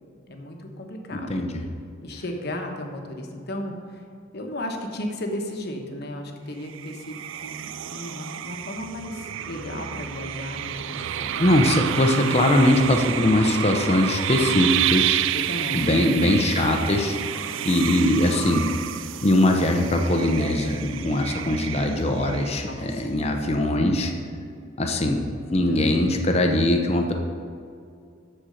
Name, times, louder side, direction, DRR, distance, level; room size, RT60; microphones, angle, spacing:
voice 1, 0.3-1.5 2.0-4.0 4.3-11.7 15.3-16.1 22.7-23.1 24.9-25.0 25.7-26.3, left 1 dB, 50° left, 3 dB, 1.2 m, -35 dB
voice 2, 1.1-1.6 11.4-15.2 15.7-18.7 19.2-24.1 24.8-27.1, left 1 dB, 30° left, 3 dB, 0.7 m, -21 dB
sound 1, 6.6-22.9, right 11 dB, 65° right, 0.3 m, -30 dB
13.0 x 4.5 x 6.4 m, 2.3 s
head